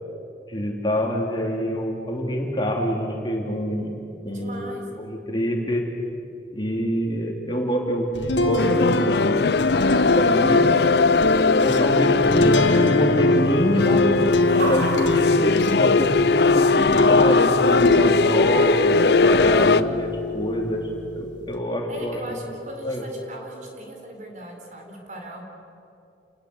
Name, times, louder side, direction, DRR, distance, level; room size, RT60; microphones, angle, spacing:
voice 1, 0.5-4.0 4.2-4.7 5.0-5.8 6.5-9.8 10.2-10.7 11.6-14.0 14.6-16.2 16.5-20.1 20.3-22.2 22.8-23.0, equal, 25° left, 0 dB, 3.2 m, -26 dB
sound 1, 1.6-16.4, right 2 dB, 70° right, 4.4 m, -42 dB
voice 2, 4.3-4.9 14.5-14.8 19.5-19.8 21.9-25.4, right 1 dB, 40° right, 1 dB, 4.5 m, -39 dB
sound 2, 8.2-18.7 19.2-21.5, left 1 dB, 85° left, 2.1 m, -27 dB
sound 3, 8.6-19.8, left 3 dB, 65° left, 0.6 m, -19 dB
30.0 x 20.0 x 8.1 m, 2.7 s
head